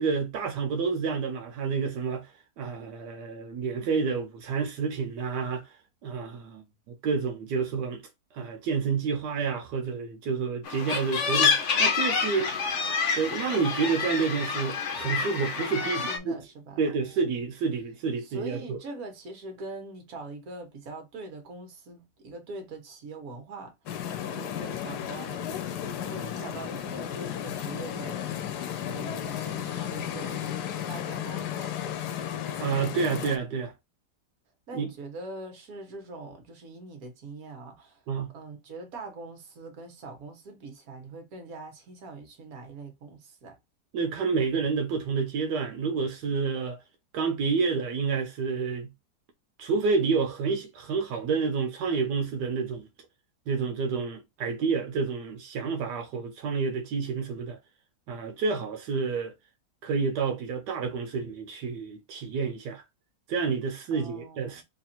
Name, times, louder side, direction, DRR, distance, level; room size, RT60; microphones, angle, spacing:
voice 1, 0.0-2.3 2.6-5.6 6.0-8.0 8.3-12.5 13.2-16.4 16.8-18.8 32.6-33.7 34.7-34.9 38.1-38.3 43.9-46.8 47.1-48.9 49.6-52.9 53.5-57.6 58.1-59.3 59.8-62.8 63.3-64.6, right 5 dB, 90° right, 1.4 m, -29 dB
sound 1, 10.6-16.2, left 5 dB, 55° left, 1.0 m, -27 dB
voice 2, 15.8-17.4 18.2-23.9 24.3-25.6 25.9-28.6 28.8-32.1 34.7-38.0 38.3-43.6 63.9-64.6, right 3 dB, 60° right, 1.6 m, -43 dB
sound 2, 23.9-33.4, left 10 dB, 80° left, 1.2 m, -34 dB
3.4 x 2.4 x 4.2 m
omnidirectional pair, 1.8 m